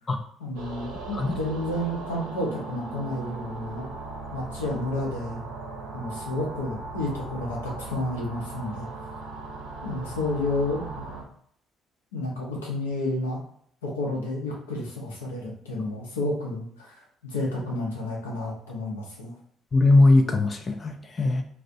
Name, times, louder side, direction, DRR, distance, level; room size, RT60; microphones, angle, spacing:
voice 1, 0.4-3.9 4.3-5.4 5.9-8.9 9.8-11.1 12.1-13.4 13.8-19.3, left 1 dB, 85° left, -3 dB, 0.6 m, -31 dB
sound 1, 0.5-11.2, right 3 dB, 75° right, 0.5 m, -38 dB
voice 2, 19.7-21.4, left 2 dB, 35° left, 5 dB, 0.3 m, -20 dB
2.4 x 2.0 x 2.5 m, 0.64 s
figure-of-eight pair, 50°, 0 cm